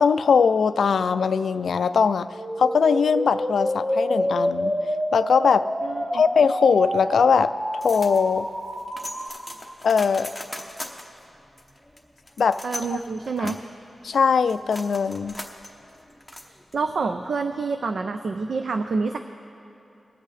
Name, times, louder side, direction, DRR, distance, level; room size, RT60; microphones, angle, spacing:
voice 1, 0.0-2.3 2.6-4.8 5.1-5.7 6.1-7.5 7.8-8.5 9.8-10.3 12.4-12.6 13.4-13.5 14.0-15.4, left 6 dB, 80° left, 12 dB, 0.3 m, -20 dB
sound 1, 2.3-9.3, equal, 25° right, 2.4 m, -28 dB
voice 2, 5.8-6.2 12.6-13.6 16.4-19.2, right 4 dB, 65° right, 7 dB, 0.4 m, -28 dB
sound 2, 7.8-17.0, left 1 dB, 5° left, 0.9 m, -40 dB
22.5 x 8.2 x 3.3 m, 3.0 s
wide cardioid pair, 165°, 0 cm